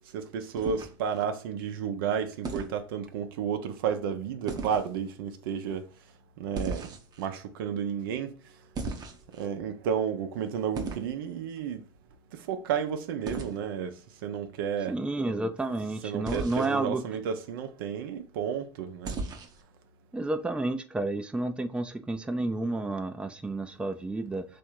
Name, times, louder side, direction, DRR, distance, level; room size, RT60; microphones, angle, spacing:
voice 1, 0.1-5.9 6.4-6.9 7.2-8.3 9.4-11.8 12.3-15.0 16.0-19.2, right 7 dB, 75° right, 0.6 m, -32 dB
sound 1, 0.6-1.2 2.4-2.8 4.5-4.9 6.5-7.3 8.7-9.5 10.7-11.1 13.3-13.5 16.2-16.8 19.0-19.6, right 3 dB, 35° right, 0.8 m, -36 dB
voice 2, 14.9-17.0 20.1-24.5, right 2 dB, 10° right, 0.5 m, -31 dB
3.5 x 2.6 x 4.4 m
hypercardioid pair, 90°, 12 cm